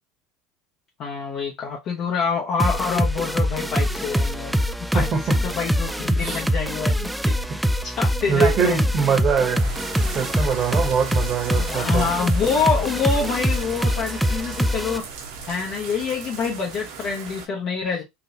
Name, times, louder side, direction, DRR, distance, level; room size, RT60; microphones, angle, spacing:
voice 1, 1.0-4.6 4.9-7.3 7.8-8.8 11.6-15.1 15.5-18.0, left 5 dB, 50° left, 1.0 m, -26 dB
sound 1, 2.6-15.0, equal, 5° right, 0.3 m, -24 dB
voice 2, 4.9-5.4 6.2-6.4 7.5-7.6 8.3-9.7 10.1-12.1, right 6 dB, 40° right, 1.1 m, -23 dB
sound 2, 9.5-17.5, right 5 dB, 80° right, 1.2 m, -37 dB
3.7 x 2.4 x 2.9 m
supercardioid pair, 95°, 0 cm